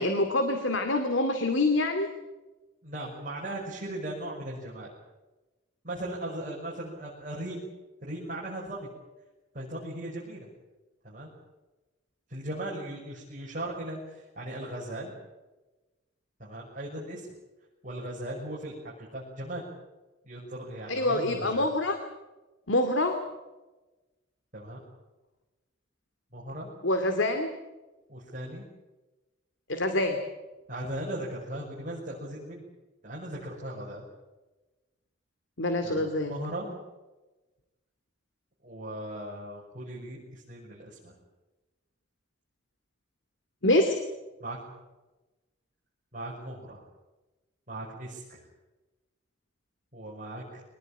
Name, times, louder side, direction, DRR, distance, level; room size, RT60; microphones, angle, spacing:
voice 1, 0.0-2.1 20.9-22.0 22.7-23.2 26.8-27.5 29.7-30.2 35.6-36.3 43.6-44.0, left 2 dB, 75° left, 7 dB, 2.4 m, -25 dB
voice 2, 2.8-4.9 5.8-7.7 8.0-8.9 9.5-10.5 11.0-11.3 12.3-15.1 16.4-17.3 17.8-19.7 20.2-21.7 24.5-24.8 26.3-26.7 28.1-28.7 30.7-32.6 33.0-34.1 35.8-36.8 38.6-41.1 44.4-44.7 46.1-46.8 47.7-48.5 49.9-50.6, right 1 dB, 40° right, -5 dB, 6.3 m, -38 dB
24.5 x 19.5 x 9.0 m, 1.1 s
head